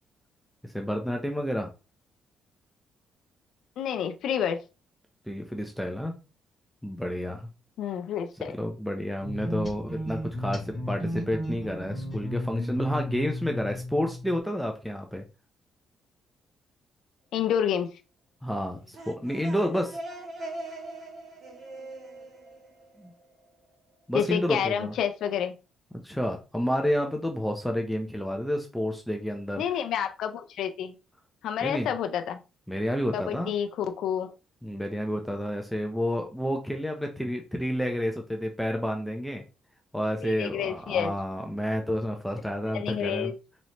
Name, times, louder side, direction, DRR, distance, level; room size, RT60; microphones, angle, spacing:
voice 1, 0.6-1.7 5.3-6.1 6.8-7.5 8.5-15.2 18.4-20.0 23.0-23.1 24.1-24.9 26.0-29.6 31.6-31.9 32.7-33.5 34.6-39.4 39.9-43.3, equal, 5° left, 3 dB, 0.7 m, -30 dB
voice 2, 3.8-4.6 7.8-8.5 17.3-17.9 24.1-25.5 29.6-30.9 31.4-32.4 33.1-34.3 40.2-41.1 42.7-43.3, left 9 dB, 80° left, 7 dB, 0.5 m, -29 dB
sound 1, 9.2-14.4, left 1 dB, 25° left, 2.0 m, -34 dB
sound 2, 18.7-23.5, right 2 dB, 50° right, 2.2 m, -41 dB
4.1 x 3.1 x 2.9 m, 0.30 s
cardioid pair, 90°, 0 cm